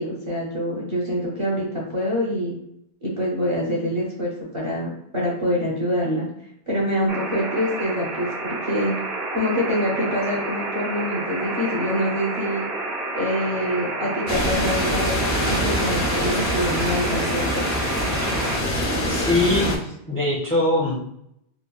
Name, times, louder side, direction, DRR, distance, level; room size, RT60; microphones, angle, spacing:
voice 1, 0.0-2.5 3.0-6.3 6.7-9.0 9.3-12.7 13.1-17.6, equal, 35° right, -5 dB, 0.6 m, -25 dB
sound 1, 7.1-18.6, right 2 dB, 70° right, 1.0 m, -30 dB
sound 2, 14.3-19.8, equal, 70° left, 0.9 m, -24 dB
voice 2, 19.1-21.1, left 2 dB, 20° left, -3 dB, 0.4 m, -22 dB
3.1 x 2.2 x 2.3 m, 0.75 s
omnidirectional pair, 1.1 m